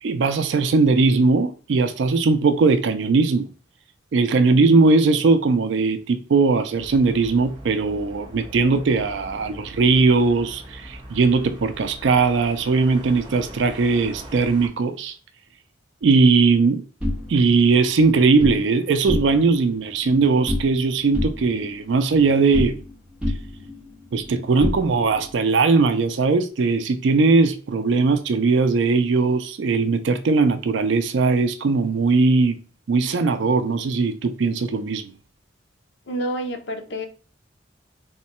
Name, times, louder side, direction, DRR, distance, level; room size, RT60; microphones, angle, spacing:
voice 1, 0.0-3.5 4.1-15.1 16.0-16.8 17.3-22.8 24.1-32.6 32.9-35.1, right 4 dB, 70° right, 0.4 m, -19 dB
voice 2, 4.4-4.7 36.1-37.1, equal, 70° left, 0.6 m, -29 dB
sound 1, 6.7-14.7, equal, 25° right, 0.7 m, -41 dB
sound 2, 17.0-18.6 19.0-19.6 19.9-20.8 21.1-22.9 23.2-25.3, left 1 dB, 5° right, 1.0 m, -29 dB
3.6 x 2.2 x 4.1 m
head